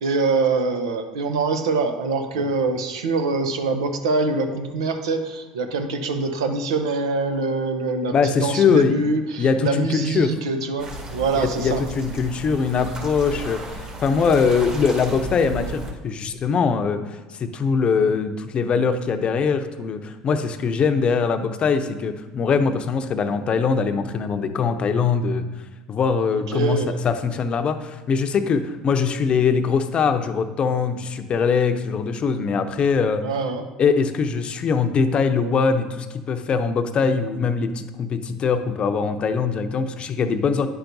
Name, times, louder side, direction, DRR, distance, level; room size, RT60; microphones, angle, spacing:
voice 1, 0.0-11.8 26.3-27.0 33.2-33.7, right 3 dB, 90° right, 7 dB, 0.7 m, -24 dB
voice 2, 8.1-9.0 9.4-10.3 11.4-25.5 25.9-33.2 33.8-40.7, left 5 dB, 40° left, 8 dB, 0.7 m, -22 dB
sound 1, 10.8-15.9, right 2 dB, 35° right, 1.9 m, -34 dB
9.6 x 5.8 x 2.7 m, 1.2 s
hypercardioid pair, 85°, 3 cm